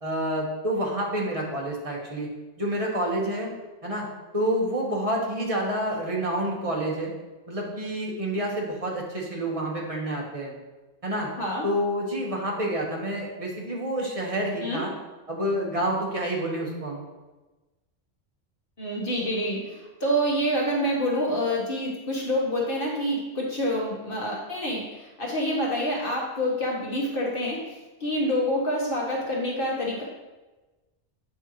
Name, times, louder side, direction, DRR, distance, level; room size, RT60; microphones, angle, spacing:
voice 1, 0.0-2.3 2.6-3.5 3.8-4.1 4.3-7.1 7.5-10.5 11.0-11.3 11.6-14.9 15.3-17.0, right 1 dB, 30° right, -3 dB, 1.4 m, -28 dB
voice 2, 11.4-11.7 14.6-14.8 18.8-27.6 28.0-30.0, equal, 50° left, -3 dB, 1.5 m, -27 dB
8.7 x 5.4 x 3.1 m, 1.1 s
omnidirectional pair, 1.2 m